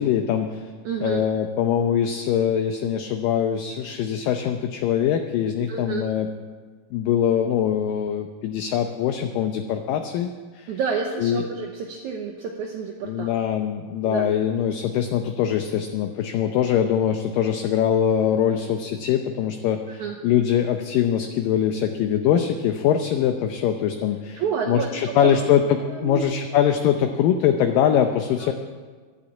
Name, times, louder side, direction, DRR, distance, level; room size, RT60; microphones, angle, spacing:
voice 1, 0.0-0.7 1.0-6.3 6.9-10.7 11.2-11.4 13.0-28.5, left 9 dB, 75° left, 6 dB, 2.2 m, -23 dB
voice 2, 0.8-1.2 5.7-6.1 10.7-13.3 14.0-14.3 20.0-20.2 24.4-25.4 25.9-26.2, right 6 dB, 70° right, 1 dB, 1.9 m, -29 dB
11.5 x 11.5 x 8.8 m, 1.5 s
omnidirectional pair, 4.4 m